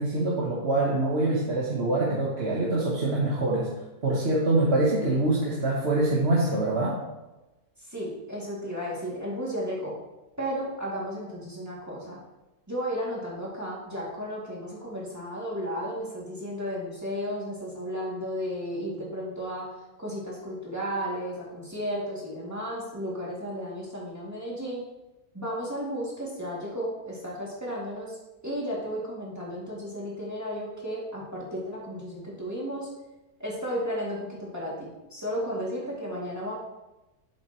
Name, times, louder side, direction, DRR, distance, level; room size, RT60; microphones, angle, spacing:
voice 1, 0.0-3.7 4.0-6.9, right 2 dB, 45° right, -4 dB, 1.3 m, -25 dB
voice 2, 7.9-10.0 10.4-12.2 12.7-19.7 20.0-24.8 25.3-28.2 28.4-32.9 33.4-36.5, equal, 10° right, -6 dB, 2.3 m, -33 dB
7.9 x 7.8 x 3.0 m, 1.0 s
omnidirectional pair, 1.6 m